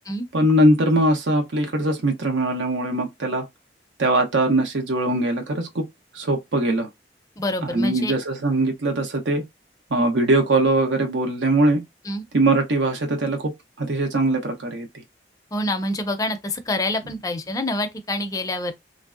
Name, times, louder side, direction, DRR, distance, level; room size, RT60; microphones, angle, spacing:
voice 1, 0.3-3.5 4.0-5.8 6.1-6.9 7.6-9.4 9.9-11.8 12.3-13.5 13.8-14.9, right 1 dB, 85° right, 0.7 m, -21 dB
voice 2, 7.4-8.1 12.1-12.2 15.5-18.7, left 1 dB, 20° left, 0.4 m, -26 dB
3.1 x 2.6 x 2.4 m
head